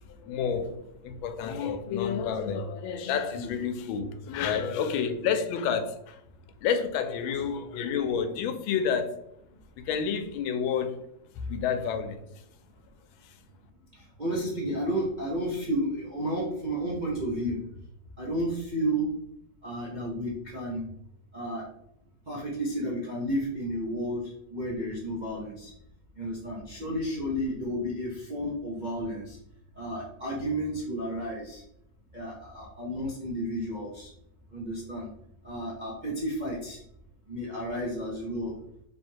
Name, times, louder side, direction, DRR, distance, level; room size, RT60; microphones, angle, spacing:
voice 1, 0.1-6.2 6.6-9.2 9.8-11.0 11.3-12.4 13.2-13.4, left 7 dB, 90° left, 1.4 m, -30 dB
voice 2, 13.9-17.6 18.2-19.2 19.6-20.9 21.3-21.7 22.3-25.7 26.2-29.4 29.8-31.6 32.1-34.1 34.5-35.1 35.4-36.8 37.3-38.5, equal, 50° right, 0.5 m, -32 dB
3.3 x 3.3 x 4.4 m
omnidirectional pair, 2.1 m